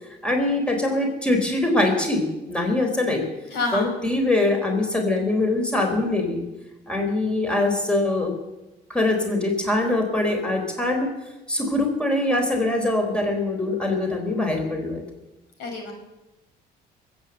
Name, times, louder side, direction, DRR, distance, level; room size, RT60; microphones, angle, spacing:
voice 1, 0.2-2.2 2.5-3.2 3.7-6.4 6.9-8.3 8.9-11.1 11.5-15.0, left 2 dB, 5° left, 2 dB, 3.9 m, -23 dB
voice 2, 3.5-3.9 15.6-15.9, left 3 dB, 80° left, 3 dB, 5.2 m, -27 dB
20.5 x 8.8 x 7.9 m, 1.0 s
cardioid pair, 110°, 17 cm